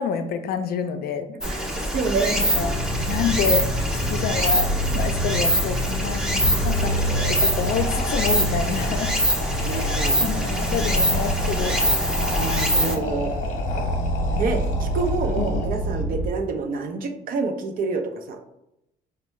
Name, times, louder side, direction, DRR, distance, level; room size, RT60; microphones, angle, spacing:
voice 1, 0.0-1.3 2.4-2.8 3.1-9.1 9.7-11.8 15.4-15.5, left 7 dB, 65° left, 8 dB, 0.4 m, -28 dB
Stream, 1.4-13.0, equal, 5° right, 0.6 m, -24 dB
voice 2, 1.4-2.5 9.6-10.2 12.1-13.4 14.3-18.4, right 4 dB, 55° right, 5 dB, 0.6 m, -28 dB
sound 1, 2.5-16.3, right 1 dB, 85° right, 0.9 m, -27 dB
sound 2, 6.3-16.0, left 2 dB, 45° left, 0.9 m, -32 dB
4.4 x 2.2 x 3.1 m, 0.84 s
cardioid pair, 110°, 17 cm